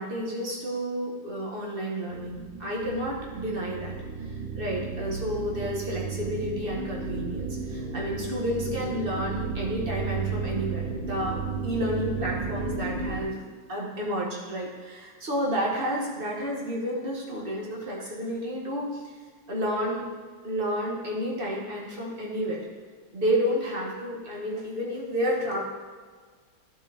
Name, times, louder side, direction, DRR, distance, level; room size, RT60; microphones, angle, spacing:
voice 1, 0.0-11.4 11.6-13.4 13.7-19.1 19.5-20.0 20.4-22.6 23.1-25.6, equal, 30° right, -3 dB, 1.4 m, -30 dB
sound 1, 2.1-13.2, right 5 dB, 90° right, 2.0 m, -33 dB
11.5 x 5.4 x 3.4 m, 1.5 s
omnidirectional pair, 2.2 m